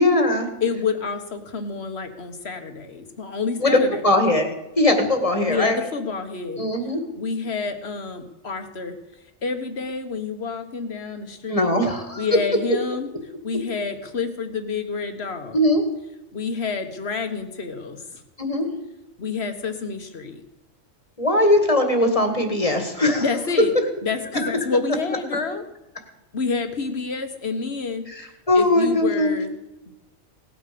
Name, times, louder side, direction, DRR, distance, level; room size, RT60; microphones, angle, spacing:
voice 1, 0.0-0.5 3.6-3.8 4.0-4.5 4.8-5.8 6.6-7.0 11.5-12.3 15.5-15.8 18.4-18.7 21.2-23.3 28.1-29.3, left 1 dB, 25° left, 5 dB, 2.0 m, -20 dB
voice 2, 0.6-4.0 5.5-6.6 7.2-9.0 9.4-11.7 12.2-13.1 13.4-15.6 16.3-18.2 19.2-20.4 23.2-23.7 24.0-25.6 26.3-28.0 28.5-29.5, left 4 dB, 50° left, 7 dB, 1.7 m, -28 dB
18.0 x 9.1 x 6.9 m, 0.95 s
omnidirectional pair, 1.4 m